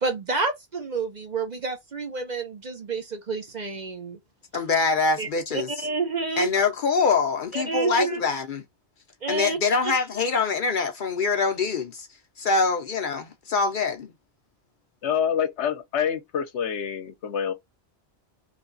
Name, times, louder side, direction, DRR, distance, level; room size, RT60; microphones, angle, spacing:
voice 1, 0.0-4.2 5.2-6.5 7.5-8.2 9.2-9.6, right 4 dB, 45° right, 0.8 m, -29 dB
voice 2, 4.5-5.9 6.4-8.6 9.3-12.1 12.4-14.1, left 4 dB, 55° left, 0.7 m, -24 dB
voice 3, 15.0-17.5, left 8 dB, 75° left, 1.0 m, -26 dB
3.2 x 2.8 x 2.5 m
omnidirectional pair, 1.2 m